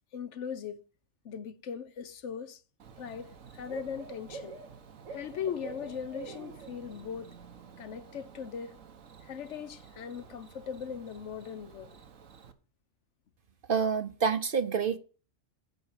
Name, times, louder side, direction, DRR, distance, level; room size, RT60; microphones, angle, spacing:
voice 1, 0.1-0.8 1.2-2.6 3.0-4.6 5.1-7.3 7.8-8.8 9.2-11.9, left 7 dB, 70° left, 1.0 m, -39 dB
Bird / Cricket, 2.8-12.5, right 5 dB, 85° right, 1.5 m, -48 dB
voice 2, 13.7-15.0, right 6 dB, 50° right, 0.8 m, -27 dB
10.5 x 4.6 x 7.4 m
omnidirectional pair, 1.3 m